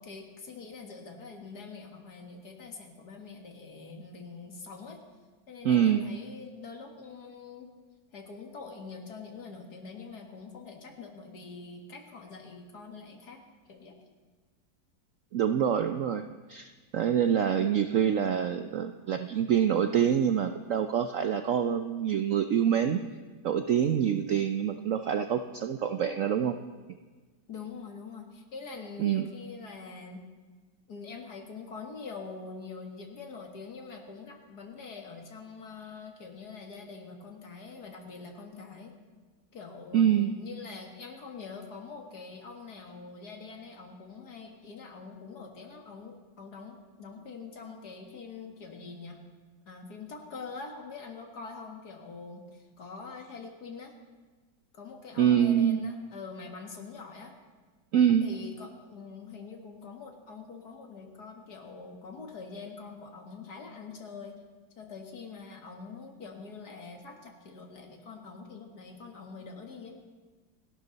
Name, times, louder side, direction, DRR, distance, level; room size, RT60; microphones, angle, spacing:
voice 1, 0.0-5.0 5.5-7.7 8.1-13.4 13.7-14.0 17.5-17.9 27.5-30.2 30.9-38.9 39.5-49.2 49.7-53.9 54.7-57.3 58.2-64.4 64.8-70.0, left 4 dB, 60° left, 3 dB, 2.4 m, -44 dB
voice 2, 5.6-6.1 15.3-23.0 23.4-26.6 29.0-29.3 39.9-40.3 55.2-55.9 57.9-58.3, right 9 dB, 65° right, 8 dB, 0.8 m, -26 dB
28.0 x 12.0 x 4.0 m, 1.4 s
omnidirectional pair, 2.0 m